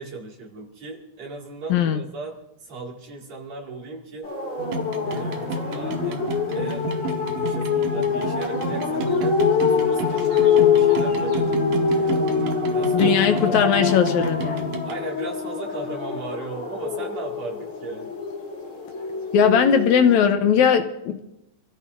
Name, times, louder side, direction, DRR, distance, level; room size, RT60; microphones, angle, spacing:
voice 1, 0.0-4.3 5.1-6.3 6.6-6.9 7.3-9.4 9.8-12.2 12.7-13.2 13.5-13.7 14.8-18.1, right 3 dB, 60° right, 3.4 m, -37 dB
voice 2, 1.7-2.0 12.9-14.7 19.3-21.2, left 7 dB, 75° left, 2.1 m, -19 dB
sound 1, 4.2-20.2, left 6 dB, 45° left, 3.8 m, -24 dB
sound 2, 4.6-14.9, right 1 dB, 90° right, 2.9 m, -30 dB
27.5 x 15.0 x 2.6 m
omnidirectional pair, 3.6 m